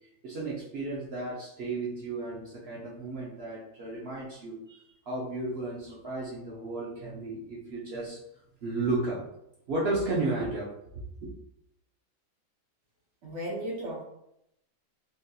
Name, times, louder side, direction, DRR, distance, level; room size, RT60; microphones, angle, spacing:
voice 1, 0.2-8.2 8.6-9.2 9.7-10.7, right 2 dB, 70° right, -5 dB, 0.6 m, -33 dB
voice 2, 13.2-14.0, equal, 85° right, -3 dB, 1.5 m, -35 dB
3.8 x 2.3 x 2.7 m, 0.80 s
omnidirectional pair, 1.8 m